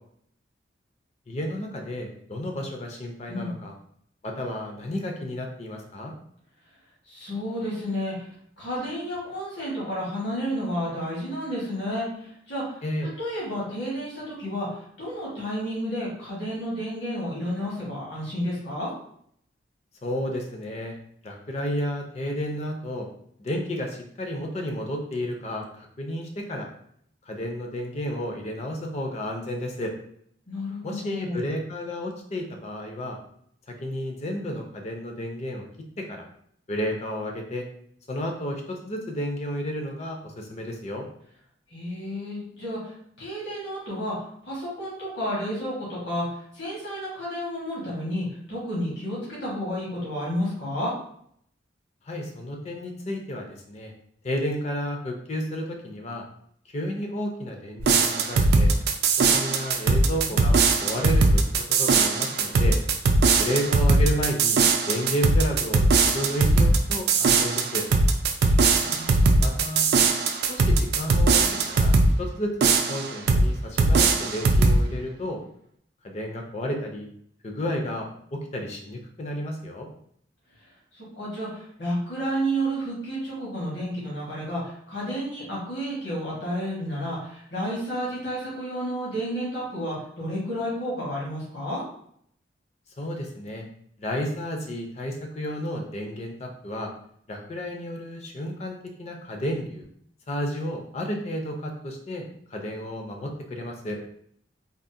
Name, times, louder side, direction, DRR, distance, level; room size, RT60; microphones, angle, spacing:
voice 1, 1.3-3.7 4.2-6.1 12.8-13.1 20.0-21.0 21.2-23.1 23.4-26.7 27.3-29.9 30.8-33.2 33.7-35.7 36.0-36.3 36.7-37.7 38.1-41.1 52.0-53.9 54.2-56.2 56.7-58.7 59.2-61.5 61.8-62.8 63.4-64.6 64.9-67.8 69.4-69.8 70.5-75.4 76.0-77.1 77.4-79.9 93.0-93.7 94.0-96.9 97.3-99.8 100.3-104.0, equal, 35° left, 2 dB, 0.4 m, -32 dB
voice 2, 7.1-8.3 8.6-12.8 13.2-18.9 30.5-31.4 41.7-44.2 44.4-50.9 68.4-69.6 80.9-91.8, equal, 70° left, -7 dB, 1.3 m, -31 dB
sound 1, 57.8-72.1 72.6-73.5 73.8-74.8, right 3 dB, 60° right, 0.3 m, -20 dB
3.6 x 2.0 x 2.6 m, 0.67 s
head